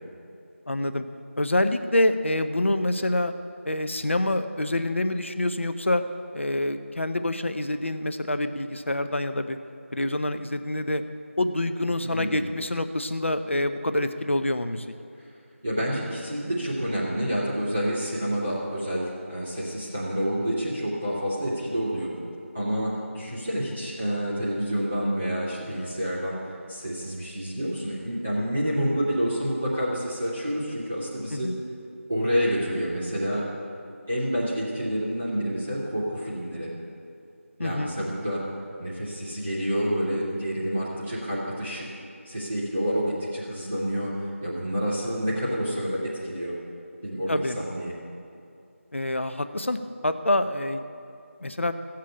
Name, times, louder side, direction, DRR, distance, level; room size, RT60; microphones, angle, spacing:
voice 1, 0.7-1.0 1.4-3.3 3.6-6.0 6.3-9.6 9.9-11.0 11.4-14.9 31.3-31.5 37.6-37.9 47.3-47.6 48.9-49.8 50.0-50.8 51.4-51.7, left 1 dB, 60° left, 9 dB, 0.8 m, -26 dB
voice 2, 12.0-12.4 15.6-22.1 22.5-26.4 26.7-31.5 32.1-33.5 34.1-36.7 37.6-38.4 38.8-41.9 42.2-44.1 44.4-46.5 47.0-47.9, equal, 5° right, -12 dB, 0.6 m, -28 dB
15.0 x 7.6 x 8.6 m, 2.6 s
figure-of-eight pair, 180°, 8 cm